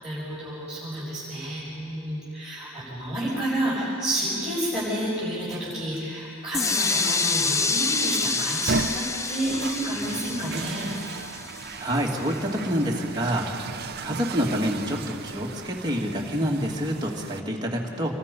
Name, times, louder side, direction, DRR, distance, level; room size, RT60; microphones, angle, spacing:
voice 1, 0.0-10.9, right 1 dB, ahead, -13 dB, 7.5 m, -30 dB
sound 1, 5.5-6.0 6.7-6.8 8.5-17.4, right 4 dB, 50° right, 0.7 m, -35 dB
sound 2, 6.5-12.4, left 4 dB, 15° left, 0.5 m, -27 dB
voice 2, 11.8-13.5 14.0-18.2, equal, 20° right, -2 dB, 2.5 m, -27 dB
27.0 x 23.5 x 5.5 m, 2.6 s
head